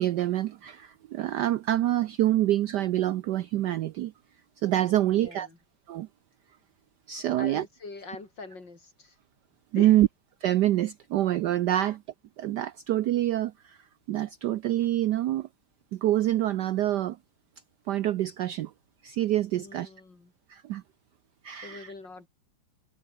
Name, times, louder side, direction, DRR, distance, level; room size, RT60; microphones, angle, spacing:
voice 1, 0.0-4.1 4.6-5.5 5.9-6.1 7.1-7.7 9.7-10.1 10.4-12.0 12.4-13.8 14.1-15.5 15.9-17.2 17.9-18.7 19.0-19.9 20.5-20.8 21.4-21.9, right 13 dB, 75° right, 1.0 m, -26 dB
voice 2, 5.0-5.6 7.4-9.2 9.7-10.0 11.8-12.0 19.5-20.3 21.5-22.3, left 3 dB, 55° left, 5.2 m, -43 dB
omnidirectional pair, 2.3 m